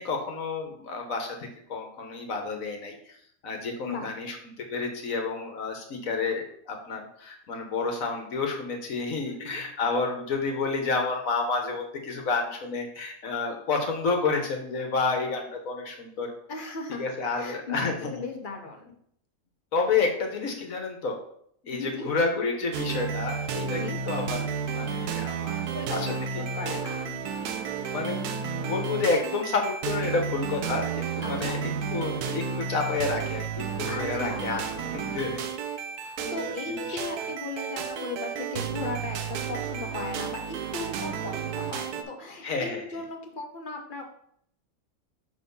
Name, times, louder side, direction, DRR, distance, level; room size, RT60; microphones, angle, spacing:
voice 1, 0.0-3.1 3.4-16.3 16.9-18.1 19.7-21.2 21.6-24.4 24.7-25.6 25.9-26.1 26.3-26.8 27.9-28.2 28.6-35.4 36.2-37.0 42.4-43.0, left 4 dB, 65° left, 3 dB, 1.5 m, -30 dB
voice 2, 9.3-9.6 16.5-17.1 17.3-19.0 21.7-22.1 23.7-24.0 25.7-27.2 31.2-31.6 33.8-34.9 36.0-44.0, left 3 dB, 40° left, 3 dB, 0.9 m, -37 dB
sound 1, 22.7-42.0, right 6 dB, 90° right, 1.2 m, -32 dB
5.9 x 4.1 x 5.4 m, 0.68 s
omnidirectional pair, 1.6 m